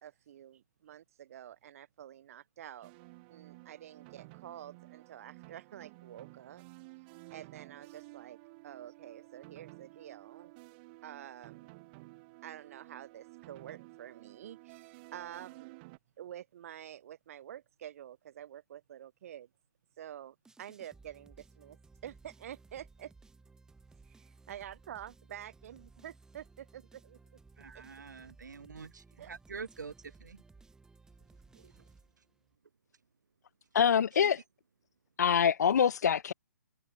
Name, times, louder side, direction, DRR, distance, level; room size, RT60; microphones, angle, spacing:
voice 1, 0.0-2.9 3.3-6.6 7.3-8.4 8.6-10.5 11.0-11.7 12.4-15.7 16.2-19.5 20.0-23.1 24.0-27.2 27.7-27.8 29.2-29.3, right 11 dB, 50° right, 3.0 m, -48 dB
sound 1, 2.8-16.0, right 26 dB, 35° right, 7.6 m, -53 dB
sound 2, 20.4-32.6, right 3 dB, 5° right, 7.5 m, -59 dB
voice 2, 27.6-30.4 31.5-31.8 32.2-32.3 34.0-34.3, right 5 dB, 70° right, 3.7 m, -46 dB
voice 3, 33.7-34.4 35.2-36.3, left 8 dB, 60° left, 0.7 m, -25 dB
figure-of-eight pair, 130°, 10 cm